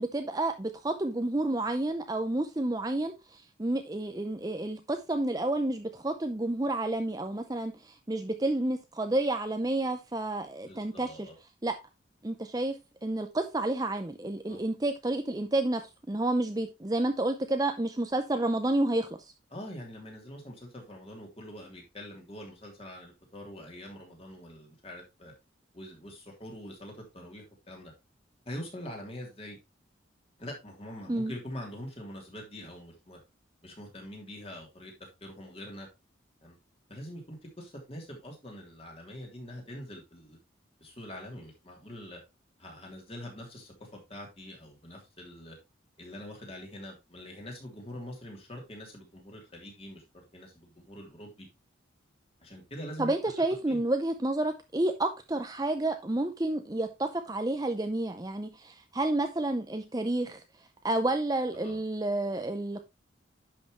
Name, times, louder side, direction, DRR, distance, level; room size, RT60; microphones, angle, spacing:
voice 1, 0.0-11.1 11.6-11.7 12.2-12.7 13.0-15.8 16.1-19.1 31.1-31.3 53.0-60.4 60.8-62.9, right 2 dB, 20° right, 0.6 m, -30 dB
voice 2, 10.6-11.3 14.5-14.7 19.5-25.3 25.7-27.9 28.4-29.6 30.4-33.2 33.6-34.9 35.2-35.9 36.4-36.5 36.9-40.4 40.8-42.2 42.6-45.6 46.0-51.5 52.4-53.1 53.7-53.8 61.5-61.8, equal, 30° left, 3.1 m, -44 dB
10.5 x 5.9 x 3.1 m
head